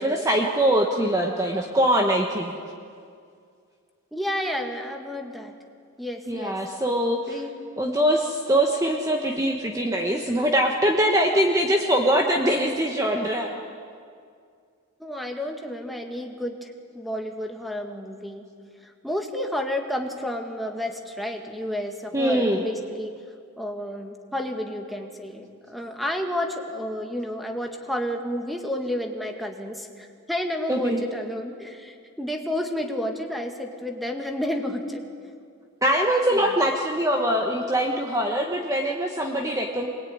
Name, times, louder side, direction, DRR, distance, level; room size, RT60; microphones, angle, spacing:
voice 1, 0.0-2.5 6.3-7.4 7.8-13.5 22.1-22.6 30.7-31.0 35.8-39.9, right 1 dB, 15° right, 2 dB, 1.4 m, -23 dB
voice 2, 4.1-5.5 6.0-6.6 7.3-7.6 15.0-18.4 18.8-23.2 23.6-35.0 36.3-36.6, left 1 dB, ahead, 2 dB, 1.9 m, -31 dB
25.0 x 21.0 x 9.6 m, 2.3 s
head